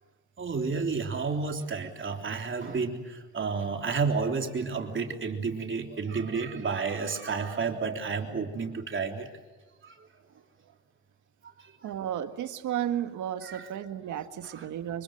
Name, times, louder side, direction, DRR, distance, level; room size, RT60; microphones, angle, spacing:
voice 1, 0.4-9.3 9.8-10.1 11.4-11.9 13.4-13.7 14.4-14.7, right 5 dB, 40° right, 3 dB, 3.6 m, -31 dB
voice 2, 11.8-15.0, right 10 dB, 75° right, 9 dB, 1.8 m, -33 dB
25.5 x 23.5 x 7.8 m, 1.3 s
cardioid pair, 90°, 30 cm